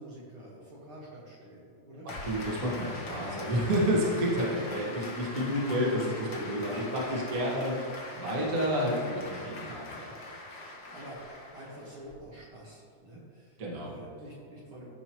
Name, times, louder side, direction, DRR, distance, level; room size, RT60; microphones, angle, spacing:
voice 1, 0.0-2.1 4.7-7.8 8.2-8.5 9.4-9.6 10.9-14.9, right 1 dB, 50° right, -7 dB, 2.1 m, -47 dB
voice 2, 2.0-7.0 7.3-7.7 8.2-10.1 13.6-13.9, equal, 35° right, -5 dB, 1.8 m, -30 dB
Applause, 2.1-12.1, left 2 dB, 50° left, 1.2 m, -42 dB
15.5 x 5.4 x 3.0 m, 2.3 s
omnidirectional pair, 3.4 m